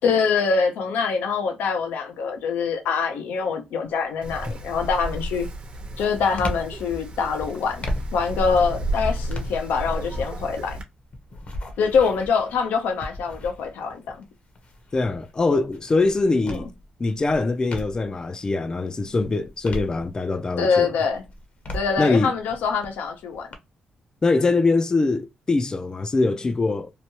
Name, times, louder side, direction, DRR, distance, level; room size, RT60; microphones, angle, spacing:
voice 1, 0.0-5.5 6.0-10.8 11.8-14.3 16.5-16.6 20.6-21.3 21.7-23.5, left 5 dB, 90° left, 0.6 m, -24 dB
sound 1, 3.8-4.2 4.7-18.2 18.7-20.5 21.0-23.5, left 1 dB, 50° left, 0.8 m, -38 dB
Wind, 4.2-10.8, equal, 40° right, 0.7 m, -32 dB
voice 2, 14.9-16.7 17.0-20.9 22.0-22.3 24.2-26.9, left 3 dB, 25° left, 0.4 m, -23 dB
2.9 x 2.2 x 2.8 m
cardioid pair, 95°, 3 cm